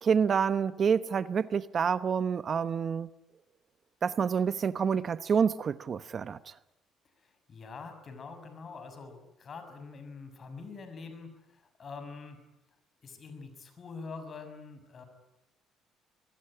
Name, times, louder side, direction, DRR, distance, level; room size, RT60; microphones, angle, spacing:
voice 1, 0.0-3.1 4.0-6.4, right 6 dB, 45° right, 0.9 m, -28 dB
voice 2, 7.1-12.4 13.0-15.0, left 4 dB, 40° left, 6.5 m, -45 dB
25.0 x 20.5 x 9.9 m
cardioid pair, 105°, 0 cm